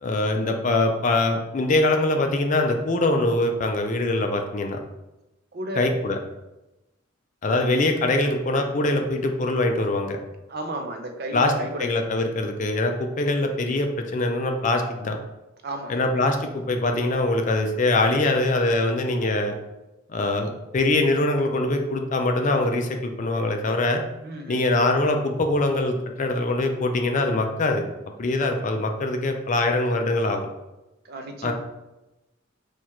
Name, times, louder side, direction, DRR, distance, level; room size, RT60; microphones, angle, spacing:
voice 1, 0.0-4.8 5.8-6.2 7.4-10.2 11.3-11.5 11.8-15.2 15.9-19.6 20.1-24.0 24.5-27.8 28.2-30.5 31.4-31.5, left 2 dB, 40° left, 4 dB, 0.4 m, -23 dB
voice 2, 5.5-6.0 10.5-11.9 15.6-16.0 24.2-24.6 31.0-31.5, right 1 dB, 50° right, 4 dB, 0.5 m, -33 dB
4.4 x 2.4 x 4.4 m, 0.98 s
head